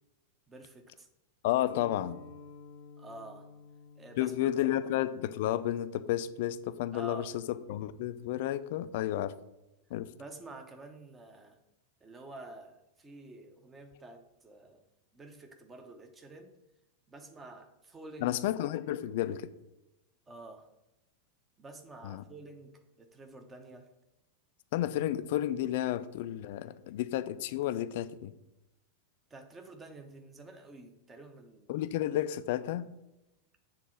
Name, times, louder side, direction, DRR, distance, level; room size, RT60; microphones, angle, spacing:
voice 1, 0.5-1.1 3.0-3.5 4.0-4.8 6.9-7.3 10.2-11.6 12.0-14.8 15.1-16.5 17.1-18.4 20.3-20.7 21.6-23.9 29.3-31.8, right 2 dB, 15° right, 5 dB, 1.0 m, -49 dB
voice 2, 1.4-2.2 4.2-7.3 7.7-9.3 9.9-10.1 18.2-19.5 22.0-22.2 24.7-28.3 31.7-32.9, left 13 dB, 50° left, 13 dB, 0.4 m, -31 dB
sound 1, 1.7-6.9, left 4 dB, 70° left, 0.8 m, -53 dB
7.2 x 3.8 x 5.8 m, 0.93 s
figure-of-eight pair, 90°, 0 cm